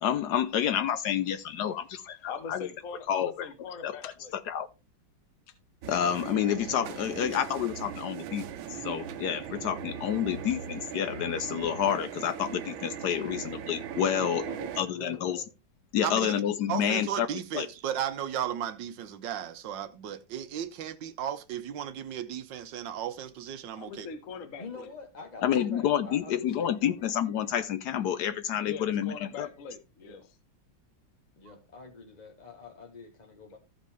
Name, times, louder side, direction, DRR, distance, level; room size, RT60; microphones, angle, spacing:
voice 1, 0.0-2.7 3.1-3.5 3.8-4.0 4.5-4.7 5.9-8.4 8.8-14.4 14.8-15.4 15.9-17.3 17.5-17.7 25.4-29.5, left 9 dB, 70° left, 1.1 m, -29 dB
voice 2, 2.3-4.3 13.1-13.5 23.7-24.9 25.5-25.6 28.6-30.2, left 5 dB, 50° left, 1.3 m, -42 dB
sound 1, 5.8-14.8, right 9 dB, 90° right, 1.5 m, -39 dB
voice 3, 14.5-15.5 24.6-27.0 30.0-30.3 31.4-33.6, left 4 dB, 30° left, 0.9 m, -45 dB
voice 4, 16.0-16.4 16.7-24.1, right 10 dB, 70° right, 1.4 m, -35 dB
14.5 x 5.3 x 3.3 m
omnidirectional pair, 2.1 m